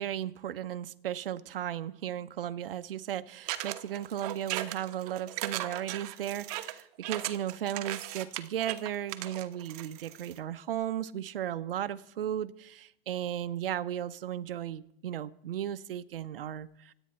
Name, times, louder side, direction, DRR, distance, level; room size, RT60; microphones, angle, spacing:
voice 1, 0.0-16.9, right 11 dB, 65° right, 12 dB, 0.8 m, -35 dB
sound 1, 3.5-10.4, right 15 dB, 40° right, 1.1 m, -37 dB
25.5 x 9.1 x 4.3 m, 0.76 s
hypercardioid pair, 120°, 30 cm